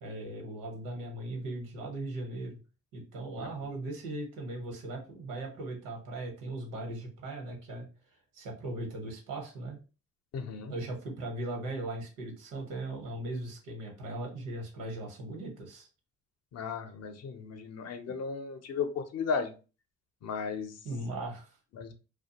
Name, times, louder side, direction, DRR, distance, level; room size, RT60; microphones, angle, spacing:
voice 1, 0.0-2.6 2.9-7.9 8.3-9.8 10.7-15.9 18.1-18.2 20.8-21.6, right 2 dB, 90° right, 2 dB, 1.0 m, -38 dB
voice 2, 10.3-10.7 16.5-19.5 20.2-20.8 21.8-21.9, left 5 dB, 55° left, 8 dB, 0.5 m, -35 dB
2.5 x 2.2 x 2.8 m, 0.34 s
cardioid pair, 90°, 30 cm